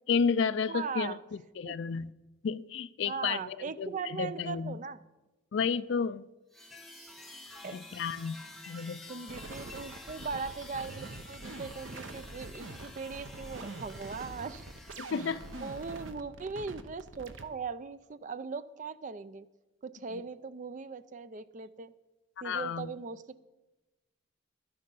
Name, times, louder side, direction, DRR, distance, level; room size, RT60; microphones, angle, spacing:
voice 1, 0.1-1.2 1.6-2.1 2.4-4.7 5.5-6.3 7.7-8.4 8.7-9.0 15.0-15.4 22.4-22.9, left 6 dB, 65° left, 0.4 m, -31 dB
voice 2, 0.7-1.2 1.6-1.8 3.0-5.0 7.6-7.8 9.1-14.7 15.1-19.5 19.8-21.9 22.4-23.4, right 5 dB, 40° right, 0.4 m, -39 dB
sound 1, 6.5-16.1, left 2 dB, ahead, 1.3 m, -50 dB
sound 2, 9.3-17.4, right 2 dB, 70° right, 0.8 m, -45 dB
12.0 x 10.5 x 5.4 m
head